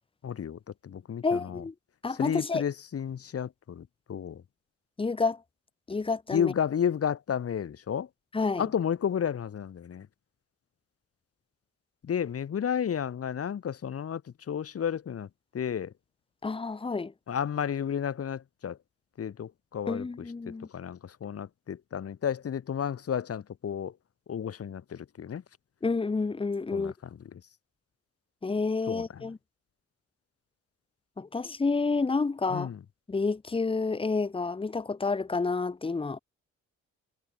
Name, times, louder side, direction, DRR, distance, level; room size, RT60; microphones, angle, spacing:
voice 1, 0.2-1.6 2.2-4.4 6.3-8.1 8.6-10.1 12.0-14.2 14.5-15.3 15.5-15.9 17.3-18.8 19.2-20.1 20.5-23.9 24.3-25.4 26.7-26.9 28.9-29.0 32.5-32.8, left 8 dB, 45° left, 1.1 m, -32 dB
voice 2, 1.2-1.7 2.0-2.6 5.0-5.4 5.9-6.5 8.3-8.6 16.4-17.1 19.9-20.7 25.8-26.9 28.4-29.4 31.2-32.7 33.1-36.2, left 4 dB, 15° left, 0.7 m, -29 dB
supercardioid pair, 50°, 33 cm